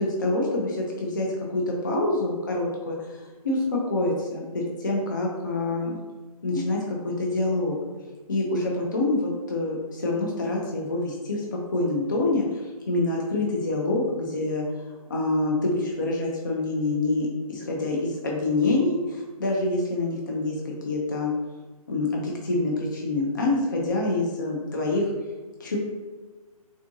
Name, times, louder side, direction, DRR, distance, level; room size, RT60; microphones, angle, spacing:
voice 1, 0.0-6.0 6.4-7.7 8.3-14.6 15.1-21.3 21.9-25.1 25.6-25.8, left 2 dB, 30° left, -2 dB, 0.4 m, -26 dB
3.7 x 2.4 x 3.8 m, 1.3 s
hypercardioid pair, 180°, 19 cm